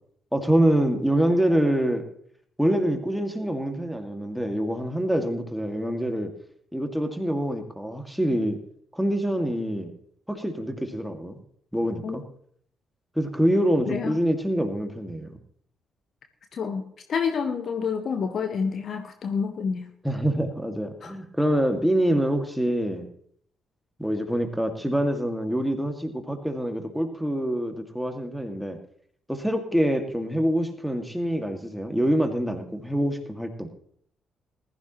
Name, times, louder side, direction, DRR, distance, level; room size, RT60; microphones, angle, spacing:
voice 1, 0.3-2.0 2.6-6.3 6.7-8.6 8.9-9.9 10.3-11.4 11.7-12.2 13.2-15.4 20.0-23.1 24.0-28.8 29.3-33.7, equal, ahead, 5 dB, 2.2 m, -25 dB
voice 2, 16.5-16.8 17.1-19.9 21.0-21.1, left 6 dB, 50° left, 6 dB, 1.3 m, -28 dB
20.5 x 13.5 x 3.1 m, 0.65 s
figure-of-eight pair, 40°, 0 cm